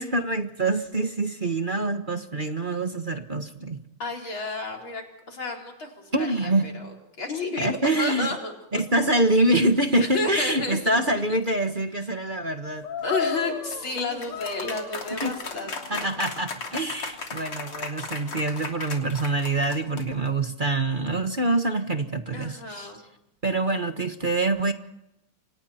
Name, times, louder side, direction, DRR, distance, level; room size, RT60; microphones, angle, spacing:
voice 1, 0.0-3.8 6.1-6.7 7.6-8.3 8.7-12.9 15.2-15.4 15.9-22.9 23.4-24.7, right 2 dB, 25° right, 7 dB, 1.3 m, -25 dB
voice 2, 4.0-7.7 8.0-8.8 10.0-11.2 13.0-16.1 22.3-23.0, left 3 dB, 65° left, 1 dB, 5.1 m, -32 dB
sound 1, 12.8-20.3, left 4 dB, 85° left, 4.1 m, -34 dB
29.0 x 26.5 x 4.4 m, 0.84 s
omnidirectional pair, 2.3 m